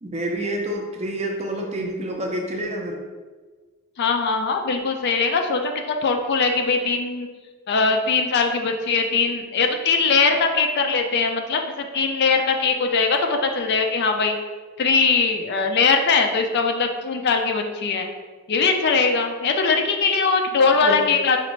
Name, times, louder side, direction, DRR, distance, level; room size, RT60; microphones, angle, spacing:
voice 1, 0.0-3.0 20.6-21.0, right 1 dB, 30° right, 1 dB, 0.5 m, -28 dB
voice 2, 4.0-7.3 7.7-14.4 14.8-18.1 18.5-21.4, left 4 dB, 50° left, 4 dB, 0.4 m, -21 dB
5.1 x 2.5 x 3.1 m, 1.4 s
head